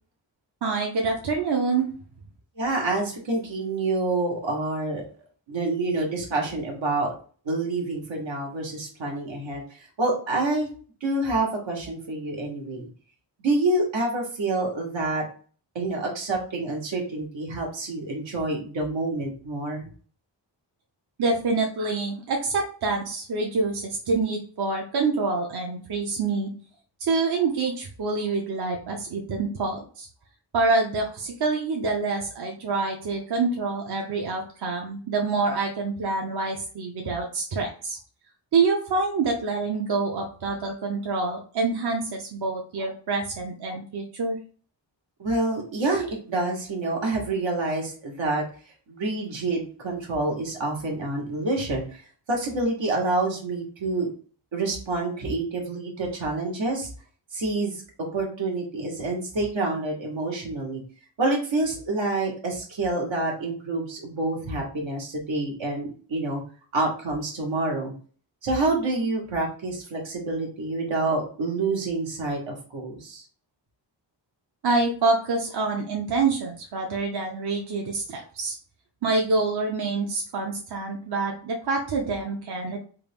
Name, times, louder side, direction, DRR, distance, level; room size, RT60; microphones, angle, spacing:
voice 1, 0.6-1.9 21.2-26.5 27.0-30.1 30.5-38.0 38.5-44.4 74.6-78.5 79.0-82.8, right 3 dB, 60° right, 1 dB, 0.7 m, -26 dB
voice 2, 2.6-5.0 5.5-7.1 7.4-10.7 11.0-12.8 13.4-15.2 15.7-19.9 45.2-48.4 48.9-52.0 52.3-54.1 54.5-56.9 57.3-57.8 58.1-60.8 61.2-66.4 66.7-67.9 68.4-73.2, right 2 dB, 85° right, 0 dB, 1.4 m, -27 dB
3.5 x 2.5 x 3.4 m, 0.42 s
wide cardioid pair, 130°, 44 cm